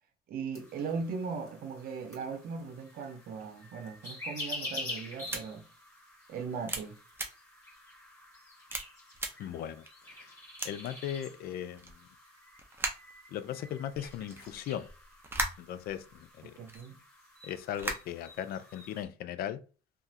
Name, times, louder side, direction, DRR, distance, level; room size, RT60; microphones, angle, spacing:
voice 1, 0.3-5.7 6.3-7.0 16.6-17.0, right 5 dB, 60° right, 0.7 m, -38 dB
sound 1, 0.5-19.0, left 1 dB, 20° left, 1.6 m, -47 dB
sound 2, 5.3-5.4 6.0-6.1 6.7-6.8 7.1-7.3 7.9-8.0 8.7-8.8 9.1-9.3 9.9-10.0 10.6-10.9 11.8-11.9 12.6-13.1 13.9-16.2 16.6-16.8 17.6-18.3, right 2 dB, 15° right, 0.6 m, -36 dB
voice 2, 9.4-10.3 10.6-11.9 13.3-14.9 15.6-16.6 17.4-19.6, left 10 dB, 65° left, 0.4 m, -38 dB
2.9 x 2.5 x 2.7 m
cardioid pair, 110°, 17 cm